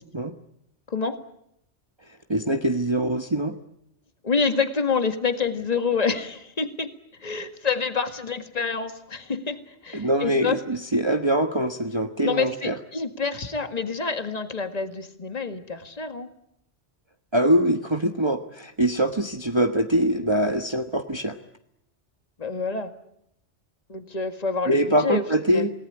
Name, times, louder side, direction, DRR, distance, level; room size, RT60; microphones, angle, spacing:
voice 1, 0.9-1.2 4.2-6.9 7.2-10.6 12.2-16.3 22.4-22.9 23.9-25.6, left 5 dB, 35° left, 7 dB, 1.9 m, -27 dB
voice 2, 2.3-3.5 9.9-12.8 17.3-21.4 24.7-25.7, right 1 dB, 25° right, 5 dB, 1.3 m, -23 dB
28.0 x 19.0 x 9.9 m, 0.79 s
omnidirectional pair, 1.2 m